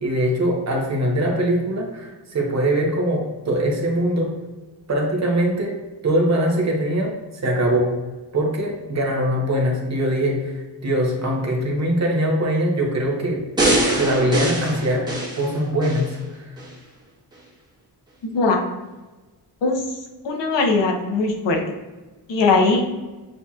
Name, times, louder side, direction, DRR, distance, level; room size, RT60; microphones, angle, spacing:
voice 1, 0.0-4.3 4.9-7.1 7.4-7.9 8.3-13.5 13.9-15.1 15.4-16.5, right 1 dB, 40° right, 0 dB, 1.0 m, -22 dB
sound 1, 13.6-16.1 16.6-16.7, right 1 dB, 10° right, 1.2 m, -22 dB
voice 2, 18.2-18.6 19.6-19.8 20.2-21.6 22.3-22.9, left 3 dB, 85° left, 1 dB, 1.0 m, -20 dB
7.8 x 2.9 x 2.4 m, 1.2 s
wide cardioid pair, 155°, 42 cm